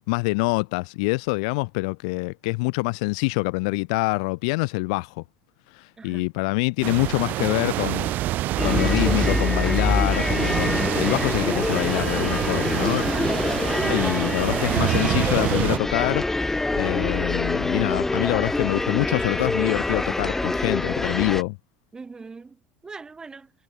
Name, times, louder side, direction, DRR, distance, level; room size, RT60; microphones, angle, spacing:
voice 1, 0.0-5.2 5.7-8.1 8.6-13.1 13.9-21.6, left 29 dB, 80° left, 0.5 m, -25 dB
sound 1, 6.8-15.8, right 15 dB, 55° right, 0.5 m, -27 dB
sound 2, 8.6-21.4, left 2 dB, 10° left, 0.4 m, -25 dB
voice 2, 13.3-14.1 21.9-23.5, right 4 dB, 20° right, 2.9 m, -41 dB
supercardioid pair, 100°, 4 cm